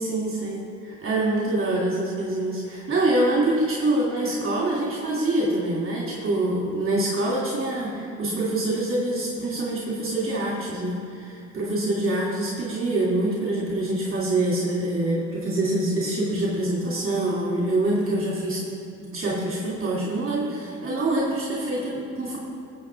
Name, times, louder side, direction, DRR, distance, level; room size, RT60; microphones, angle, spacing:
voice 1, 0.0-18.6 19.0-22.4, right 1 dB, 45° right, -5 dB, 2.7 m, -25 dB
20.5 x 8.3 x 3.5 m, 2.4 s
cardioid pair, 90°, 30 cm